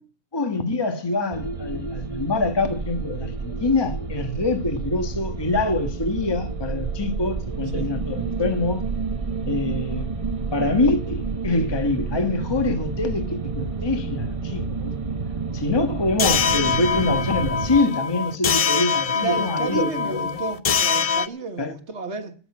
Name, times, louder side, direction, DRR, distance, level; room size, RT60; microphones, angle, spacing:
voice 1, 0.3-8.8 9.5-10.1 10.5-14.9 15.5-20.4 21.6-21.7, left 2 dB, 20° left, 1.4 m, -25 dB
sound 1, 1.3-17.8, right 4 dB, 30° right, 0.9 m, -30 dB
sound 2, 16.2-21.3, left 6 dB, 45° left, 0.5 m, -23 dB
voice 2, 19.2-22.3, right 4 dB, 55° right, 1.8 m, -31 dB
14.0 x 7.9 x 8.5 m
omnidirectional pair, 1.5 m